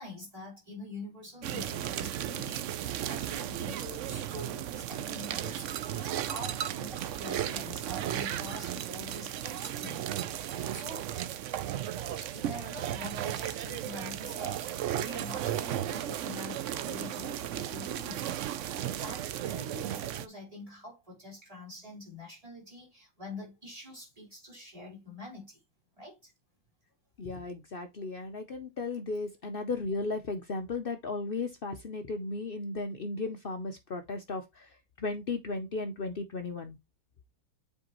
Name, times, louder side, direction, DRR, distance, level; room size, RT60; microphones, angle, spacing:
voice 1, 0.0-10.0 10.4-11.1 12.2-18.3 18.7-25.6 26.0-26.3, left 1 dB, 20° right, 4.2 m, -45 dB
sound 1, 1.4-20.3, right 11 dB, 75° right, 0.7 m, -35 dB
voice 2, 27.2-34.6 35.0-36.8, left 3 dB, 70° left, 0.5 m, -35 dB
7.6 x 4.7 x 3.0 m
omnidirectional pair, 1.9 m